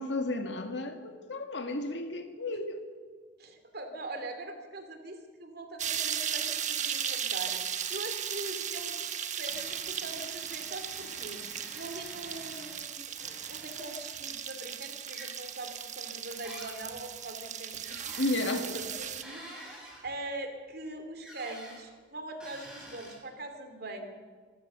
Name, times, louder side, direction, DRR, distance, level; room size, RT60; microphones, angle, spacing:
voice 1, 0.0-2.8 18.2-18.7, left 2 dB, 70° left, 2.1 m, -33 dB
voice 2, 3.4-18.1 18.5-19.8 20.0-24.1, right 2 dB, 55° right, 3.0 m, -42 dB
sound 1, 5.8-19.2, right 8 dB, 40° right, 1.2 m, -36 dB
sound 2, 9.5-12.8 13.2-14.2 15.1-15.3 16.4-17.0 17.8-18.5 19.2-20.1 21.2-21.8 22.4-23.1, right 1 dB, 5° right, 7.4 m, -49 dB
26.5 x 15.0 x 6.9 m
head